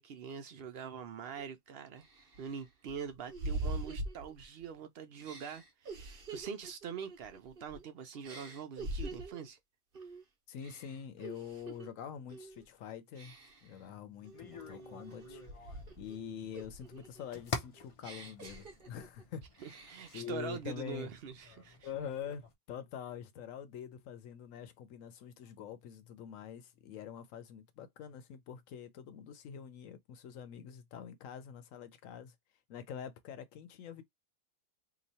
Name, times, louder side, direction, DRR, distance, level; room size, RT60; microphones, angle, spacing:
voice 1, 0.0-2.0 2.4-9.6 19.6-21.9, right 7 dB, 65° right, 0.6 m, -44 dB
sound 1, 1.4-1.5 2.0-4.7 5.2-7.9 8.2-9.5 9.9-10.2 10.6-11.9 12.3-12.6 13.1-13.7 14.2-16.2 16.5-19.2 19.6-20.2, right 2 dB, 45° right, 1.0 m, -44 dB
voice 2, 10.5-13.4 13.6-21.1 21.8-32.4 32.7-34.0, left 8 dB, 70° left, 1.0 m, -45 dB
sound 2, 14.3-22.5, left 4 dB, 50° left, 0.4 m, -47 dB
3.0 x 2.3 x 4.0 m
omnidirectional pair, 1.5 m